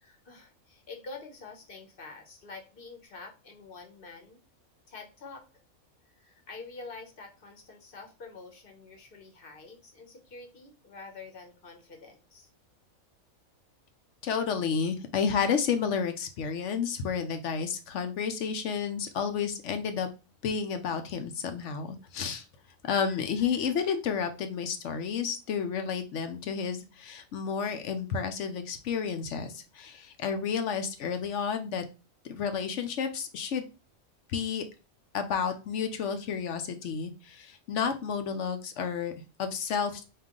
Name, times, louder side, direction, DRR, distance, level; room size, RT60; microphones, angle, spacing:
voice 1, 0.0-4.4 4.9-5.5 6.1-12.5, left 3 dB, 45° left, 3 dB, 0.9 m, -47 dB
voice 2, 14.2-20.1 20.4-22.4 22.8-31.8 32.2-33.6 34.3-34.6 35.1-39.1 39.4-40.0, left 6 dB, 65° left, 8 dB, 0.9 m, -31 dB
4.6 x 2.5 x 3.7 m, 0.31 s
omnidirectional pair, 1.5 m